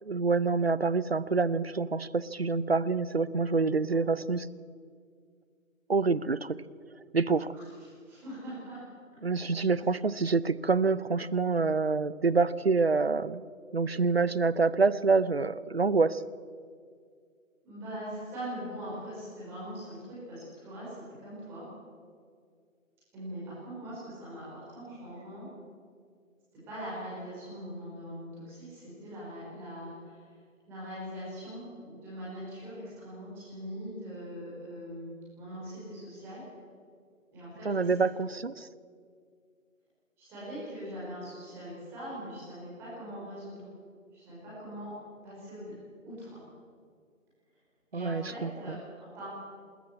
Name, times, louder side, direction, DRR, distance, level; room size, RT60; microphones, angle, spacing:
voice 1, 0.0-4.5 5.9-6.6 7.1-7.5 9.2-13.5 13.7-16.2 37.6-38.7 47.9-48.8, right 4 dB, 50° right, 18 dB, 0.6 m, -27 dB
voice 2, 7.5-8.8 17.6-21.7 23.1-25.5 26.7-30.2 30.7-35.1 35.4-36.4 37.3-37.9 40.2-43.7 44.1-44.9 45.2-45.8 46.0-46.4 47.9-49.3, equal, 5° right, -9 dB, 5.0 m, -42 dB
26.5 x 13.5 x 8.4 m, 2.1 s
figure-of-eight pair, 175°, 41 cm